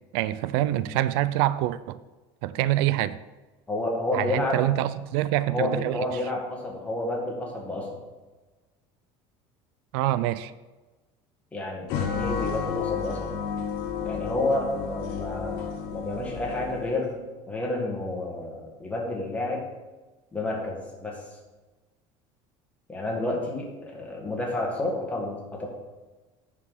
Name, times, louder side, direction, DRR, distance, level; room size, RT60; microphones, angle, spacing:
voice 1, 0.1-2.0 2.4-3.2 4.1-6.0 9.9-10.5, right 14 dB, 85° right, 0.4 m, -25 dB
voice 2, 3.7-4.6 5.5-7.9 11.5-13.3 14.1-17.2 17.5-19.7 20.3-21.2 22.9-25.7, left 2 dB, 10° left, 1.8 m, -30 dB
sound 1, 11.9-17.0, left 6 dB, 90° left, 1.4 m, -32 dB
9.6 x 4.9 x 5.5 m
cardioid pair, 160°, 13 cm